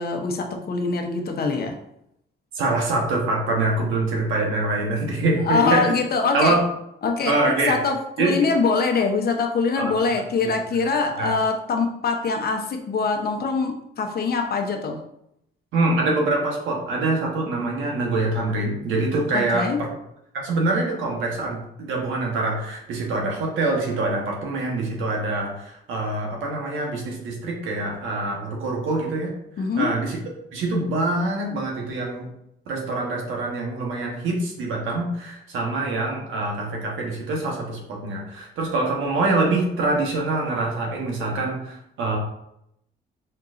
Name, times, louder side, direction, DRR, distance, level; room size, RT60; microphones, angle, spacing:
voice 1, 0.0-1.8 5.4-6.6 7.0-7.4 7.6-15.0 19.3-19.8 29.6-29.9, left 4 dB, 50° left, 4 dB, 0.8 m, -23 dB
voice 2, 2.5-6.0 6.3-6.6 7.3-7.8 8.2-8.3 9.8-9.9 10.4-10.5 11.2-11.4 15.7-19.9 20.3-29.3 29.8-30.2 30.5-32.3 32.7-42.2, right 2 dB, 85° right, 0 dB, 1.2 m, -25 dB
4.5 x 3.8 x 2.5 m, 0.78 s
cardioid pair, 90°, 20 cm